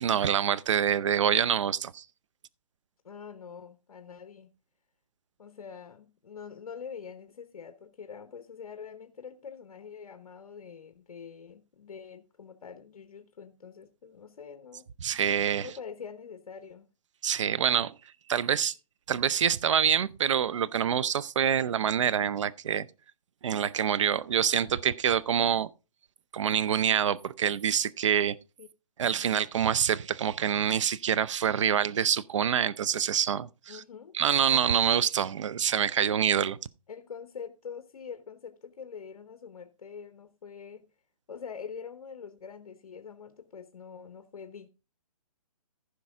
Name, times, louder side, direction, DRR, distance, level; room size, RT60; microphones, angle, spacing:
voice 1, 0.0-2.0 15.0-15.7 17.2-17.9 18.3-18.7 19.1-22.9 23.4-25.7 26.3-28.4 29.0-33.8 34.1-36.6, right 8 dB, 50° right, 0.6 m, -26 dB
voice 2, 3.0-4.5 5.4-14.9 15.5-16.9 28.6-28.7 29.1-29.4 33.7-34.2 36.9-40.9 41.3-44.7, left 6 dB, 70° left, 1.0 m, -45 dB
15.0 x 5.3 x 3.5 m
hypercardioid pair, 165°, 20 cm